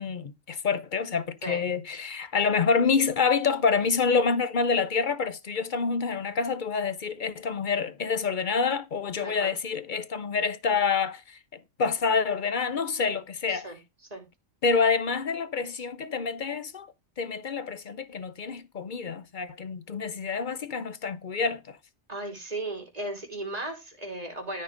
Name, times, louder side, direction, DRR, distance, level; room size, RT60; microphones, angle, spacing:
voice 1, 0.0-13.7 14.6-21.8, left 5 dB, 45° left, 0.7 m, -27 dB
voice 2, 9.2-9.5 13.5-13.8 14.1-14.2 22.1-24.6, right 1 dB, 30° right, 3.1 m, -36 dB
13.0 x 4.5 x 5.0 m
omnidirectional pair, 1.4 m